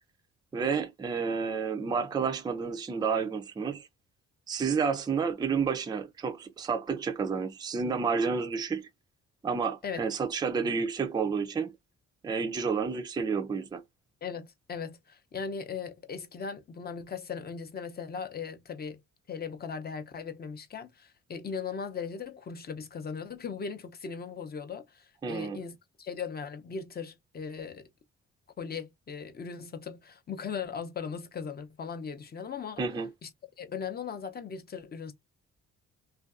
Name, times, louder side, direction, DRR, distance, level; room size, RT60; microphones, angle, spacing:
voice 1, 0.5-3.9 4.5-8.9 9.4-11.7 12.2-13.8 25.2-25.6 32.8-33.1, right 5 dB, 15° right, 0.4 m, -30 dB
voice 2, 14.2-19.0 19.3-27.9 28.6-32.8 33.2-33.3 33.6-35.1, left 6 dB, 30° left, 0.6 m, -38 dB
2.5 x 2.3 x 2.4 m
cardioid pair, 90°, 30 cm